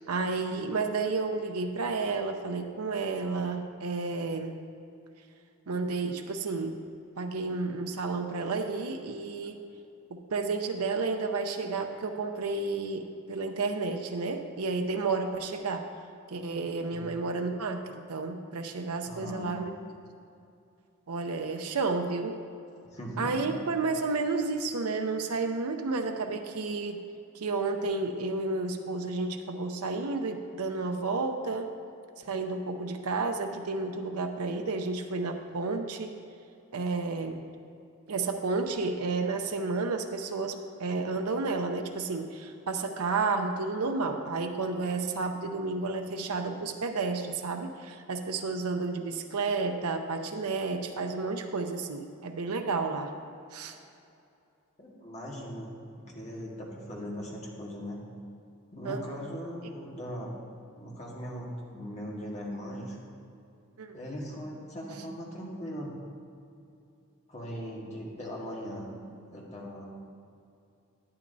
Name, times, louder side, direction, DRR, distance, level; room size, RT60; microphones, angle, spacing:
voice 1, 0.1-4.5 5.7-6.9 7.2-9.6 10.1-15.9 16.3-19.8 21.1-22.4 23.2-27.0 27.3-31.7 32.2-36.2 36.7-37.5 38.1-53.1 53.5-53.7 58.8-59.0 63.8-64.0, right 3 dB, 90° right, 5 dB, 0.7 m, -31 dB
voice 2, 19.1-19.7 22.9-23.5 54.8-58.0 58.7-60.3 60.8-63.0 63.9-65.9 67.3-68.9 69.3-69.9, equal, 30° left, -3 dB, 1.6 m, -39 dB
11.5 x 9.4 x 2.7 m, 2.6 s
head